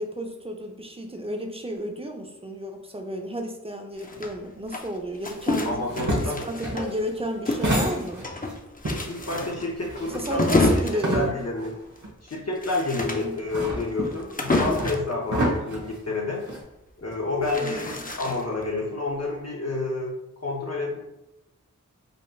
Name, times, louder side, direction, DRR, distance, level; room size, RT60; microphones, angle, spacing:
voice 1, 0.0-5.8 6.2-8.3 10.1-11.3 13.1-13.3 17.4-18.0, right 1 dB, 20° right, 3 dB, 0.6 m, -32 dB
sound 1, 4.0-7.1 7.5-15.1 17.0-18.6, left 2 dB, 25° left, 0.5 m, -29 dB
voice 2, 5.6-6.5 8.9-10.6 11.1-11.7 12.2-16.4 17.0-20.1 20.4-21.0, left 3 dB, 55° left, -3 dB, 0.8 m, -29 dB
sound 2, 5.7-8.5 8.8-11.7 12.0-12.1 13.0-16.6, right 1 dB, 65° right, 1.1 m, -29 dB
5.1 x 2.9 x 2.3 m, 0.88 s
wide cardioid pair, 45°, 31 cm